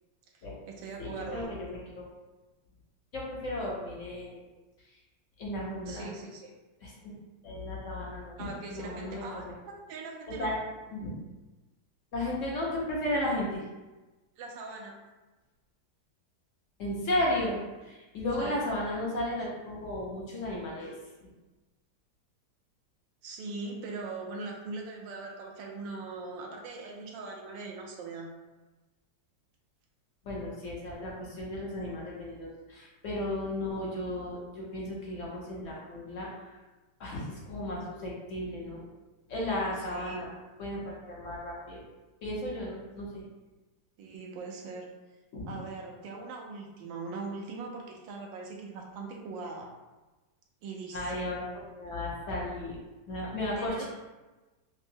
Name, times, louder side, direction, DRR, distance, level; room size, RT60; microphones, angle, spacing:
voice 1, 0.3-1.5 5.9-6.5 8.4-10.5 14.4-15.0 18.4-18.6 23.2-28.3 39.9-40.2 44.0-44.9 45.5-49.7 50.6-51.2 53.6-53.9, right 3 dB, 80° right, 0 dB, 1.3 m, -41 dB
voice 2, 1.0-2.1 3.1-4.4 5.4-6.1 6.8-7.1 7.4-9.5 10.3-10.6 10.9-11.2 12.1-13.6 16.8-20.9 21.2-21.3 30.2-36.3 37.0-38.8 39.3-40.3 40.6-41.8 42.2-43.2 45.3-45.6 50.9-51.4 51.8-52.8 53.1-53.9, left 1 dB, 60° left, -4 dB, 0.9 m, -34 dB
5.5 x 2.0 x 2.6 m, 1.2 s
omnidirectional pair, 2.0 m